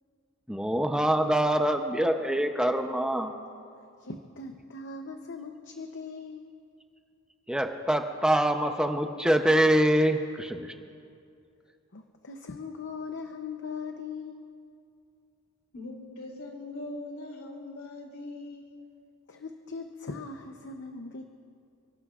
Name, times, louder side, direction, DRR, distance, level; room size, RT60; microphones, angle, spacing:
voice 1, 0.5-3.3 7.5-10.7, right 1 dB, 5° right, 5 dB, 0.7 m, -25 dB
voice 2, 4.0-6.6 11.9-14.6 19.3-21.2, left 4 dB, 60° left, 5 dB, 0.8 m, -40 dB
voice 3, 15.7-18.8, left 2 dB, 80° left, 0 dB, 3.1 m, -41 dB
29.5 x 17.5 x 2.5 m, 2.4 s
head